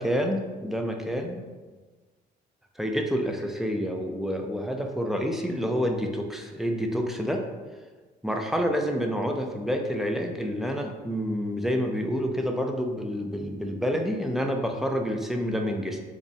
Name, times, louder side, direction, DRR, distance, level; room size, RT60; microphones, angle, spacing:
voice 1, 0.0-1.4 2.8-7.5 8.2-16.0, equal, ahead, 3 dB, 0.4 m, -28 dB
3.5 x 2.1 x 3.9 m, 1.3 s
cardioid pair, 110°, 17 cm